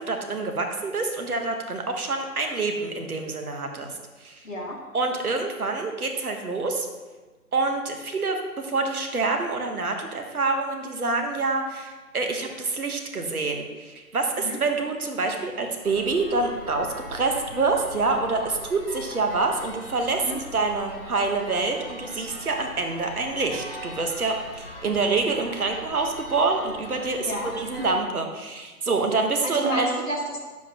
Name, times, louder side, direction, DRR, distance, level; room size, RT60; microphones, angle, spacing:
voice 1, 0.0-4.5 4.9-6.9 7.5-30.1, right 3 dB, 65° right, 4 dB, 1.3 m, -27 dB
voice 2, 4.4-4.8 14.4-14.6 20.2-20.4 27.2-27.5 29.4-30.4, equal, 55° left, -3 dB, 2.2 m, -30 dB
sound 1, 15.8-28.0, left 1 dB, 35° left, 0.8 m, -41 dB
9.6 x 7.4 x 3.0 m, 1.3 s
hypercardioid pair, 180°, 46 cm